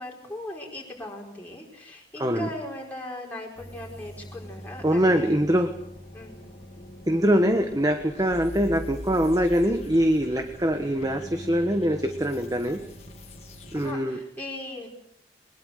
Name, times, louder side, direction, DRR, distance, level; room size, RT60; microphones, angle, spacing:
voice 1, 0.0-5.4 6.1-6.4 13.7-14.9, left 1 dB, 10° left, -2 dB, 4.9 m, -38 dB
sound 1, 3.6-13.9, equal, 35° left, 3.2 m, -42 dB
voice 2, 4.8-5.7 7.1-12.8 13.7-14.2, equal, 20° right, 7 dB, 1.3 m, -23 dB
22.0 x 21.5 x 6.6 m, 0.75 s
head